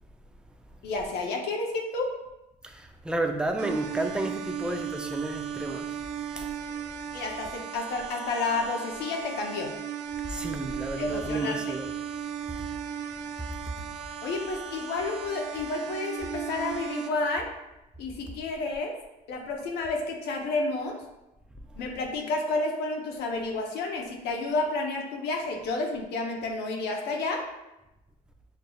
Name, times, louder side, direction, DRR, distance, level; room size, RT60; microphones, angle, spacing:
voice 1, 0.8-2.1 7.1-9.7 11.0-11.8 14.2-17.5 18.0-18.9 19.3-21.0 21.8-27.4, left 3 dB, 75° left, 1 dB, 0.7 m, -30 dB
voice 2, 2.6-6.0 6.3-6.5 10.2-11.9, right 2 dB, 5° right, 4 dB, 0.4 m, -32 dB
sound 1, 3.6-17.1, right 8 dB, 85° right, 0.5 m, -36 dB
6.6 x 2.7 x 2.3 m, 0.95 s
cardioid pair, 110°, 17 cm